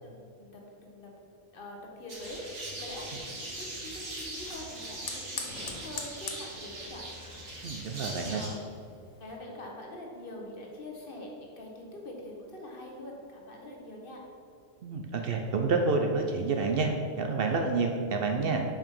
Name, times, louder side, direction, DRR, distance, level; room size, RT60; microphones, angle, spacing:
voice 1, 0.0-1.1 1.5-7.0 7.8-8.6 9.2-14.2, left 1 dB, 50° left, -1 dB, 1.2 m, -44 dB
Fire, 2.1-9.4, left 5 dB, 85° left, 1.2 m, -46 dB
sound 1, 2.1-8.5, right 1 dB, 90° right, 1.8 m, -41 dB
voice 2, 7.6-8.4 14.8-18.6, right 4 dB, 60° right, 3 dB, 0.7 m, -28 dB
5.3 x 5.0 x 5.3 m, 2.5 s
omnidirectional pair, 1.2 m